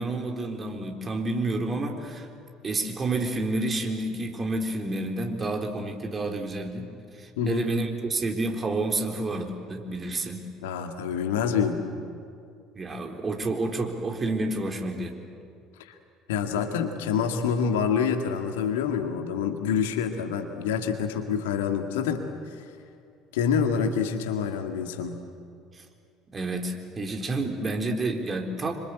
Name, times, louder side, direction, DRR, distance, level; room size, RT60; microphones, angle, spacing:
voice 1, 0.0-2.3 2.6-6.9 7.1-10.4 12.7-15.2 16.6-16.7 25.7-25.8 26.3-28.7, right 2 dB, 30° right, 3 dB, 4.0 m, -29 dB
voice 2, 7.4-7.7 10.6-11.8 15.8-15.9 16.3-22.3 22.6-22.7 23.3-25.2, left 7 dB, 70° left, 5 dB, 2.1 m, -27 dB
27.0 x 25.5 x 8.4 m, 2.4 s
figure-of-eight pair, 60°, 0 cm